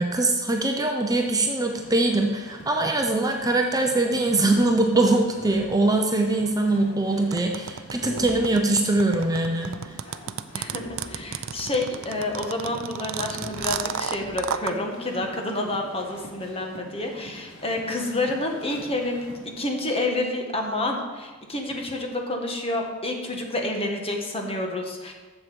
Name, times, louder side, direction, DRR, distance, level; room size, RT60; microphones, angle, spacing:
voice 1, 0.0-9.9, right 2 dB, 20° right, 2 dB, 0.7 m, -22 dB
sound 1, 1.6-19.5, equal, 80° left, 2.9 m, -46 dB
sound 2, 5.3-5.8 8.0-8.9 10.7-11.8 13.3-14.7, equal, 60° left, 1.2 m, -43 dB
sound 3, 7.3-14.7, right 8 dB, 70° right, 0.5 m, -31 dB
voice 2, 10.5-25.1, left 2 dB, 30° left, 2 dB, 1.4 m, -29 dB
7.7 x 7.2 x 7.0 m, 1.3 s
head